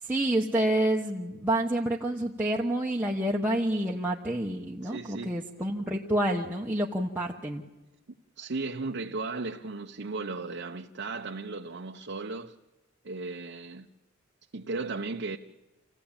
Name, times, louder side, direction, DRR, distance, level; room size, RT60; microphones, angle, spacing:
voice 1, 0.0-7.6, right 1 dB, 10° right, 1.0 m, -28 dB
voice 2, 4.8-5.4 8.4-12.5 13.0-13.9 14.5-15.4, right 3 dB, 55° right, 0.8 m, -35 dB
27.0 x 15.5 x 8.9 m
head